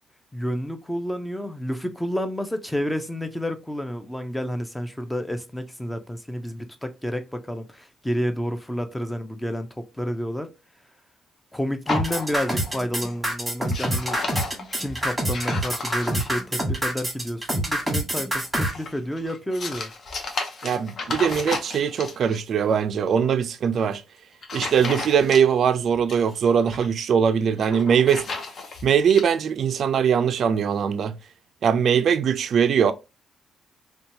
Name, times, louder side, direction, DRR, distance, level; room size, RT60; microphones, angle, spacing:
voice 1, 0.3-10.5 11.5-14.2 14.7-19.9, equal, 5° left, 0.5 m, -30 dB
sound 1, 11.9-12.7 13.0-13.3 13.6-16.5 18.3-22.4 23.7-24.0 24.4-25.7 25.9-26.9 27.5-29.3, left 3 dB, 50° left, 0.7 m, -34 dB
sound 2, 11.9-18.7, right 1 dB, 10° right, 1.3 m, -26 dB
voice 2, 20.6-24.0 24.5-28.3 28.8-31.2 31.6-32.9, right 7 dB, 60° right, 0.3 m, -21 dB
2.7 x 2.2 x 2.7 m
cardioid pair, 90°, 0 cm